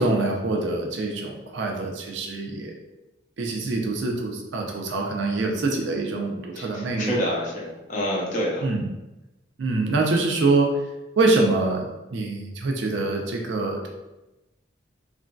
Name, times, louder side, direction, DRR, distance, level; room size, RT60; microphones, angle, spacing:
voice 1, 0.0-2.7 3.4-7.3 8.6-8.8 9.6-10.8 11.2-13.9, right 2 dB, 70° right, 1 dB, 0.5 m, -25 dB
voice 2, 6.6-8.7, equal, 40° left, -3 dB, 0.6 m, -27 dB
3.0 x 2.5 x 2.2 m, 1.0 s
head